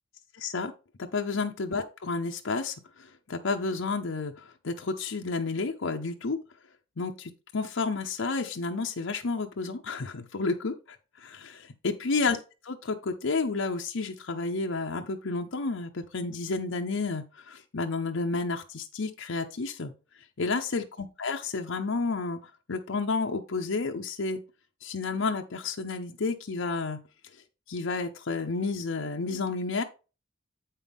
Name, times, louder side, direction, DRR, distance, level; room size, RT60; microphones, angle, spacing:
voice 1, 0.4-0.7 1.0-6.4 7.0-11.0 11.2-12.4 12.6-19.9 20.4-22.4 22.7-24.4 24.8-27.0 27.7-29.8, left 3 dB, 85° left, 3 dB, 0.7 m, -31 dB
8.2 x 5.6 x 3.5 m, 0.32 s
head